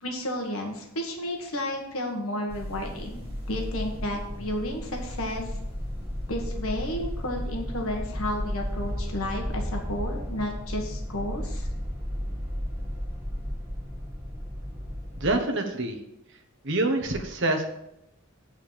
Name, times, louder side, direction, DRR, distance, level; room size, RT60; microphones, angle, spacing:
voice 1, 0.0-3.2 3.5-5.5 6.3-11.7, left 1 dB, 70° left, 2 dB, 1.5 m, -32 dB
sound 1, 2.5-15.3, equal, 10° right, 3.4 m, -34 dB
voice 2, 15.2-16.0 16.6-17.6, right 2 dB, 55° right, 4 dB, 1.3 m, -26 dB
8.8 x 4.6 x 7.4 m, 0.83 s
head